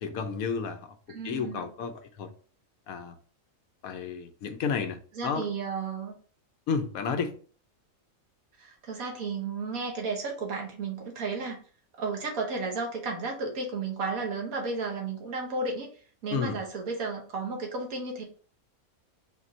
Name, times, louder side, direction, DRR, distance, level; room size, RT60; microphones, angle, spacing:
voice 1, 0.0-2.3 2.9-3.2 3.8-5.4 6.7-7.3 16.3-16.6, left 6 dB, 85° left, 1.1 m, -32 dB
voice 2, 1.1-1.7 5.1-6.2 8.6-11.6 12.0-18.2, right 4 dB, 80° right, 1.6 m, -33 dB
4.2 x 2.5 x 4.2 m
omnidirectional pair, 1.5 m